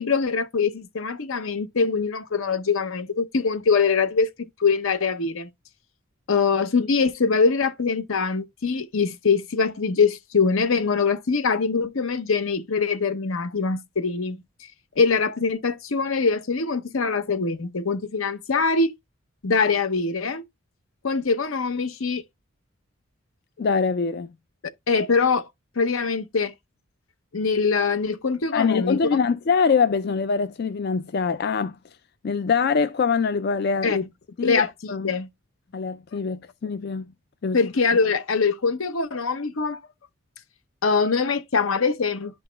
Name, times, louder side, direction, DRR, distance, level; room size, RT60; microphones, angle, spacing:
voice 1, 0.0-4.3 4.6-5.5 6.3-14.4 15.0-18.9 19.4-20.4 21.0-22.2 24.9-25.5 25.8-26.5 27.3-29.2 33.8-34.0 34.4-35.3 37.5-39.8 40.8-42.4, left 4 dB, 70° left, 0.8 m, -23 dB
voice 2, 23.6-24.3 28.5-31.8 32.2-34.0 34.4-35.2 35.7-37.1 37.4-37.7, left 5 dB, 45° left, 0.3 m, -24 dB
11.5 x 4.0 x 2.2 m
head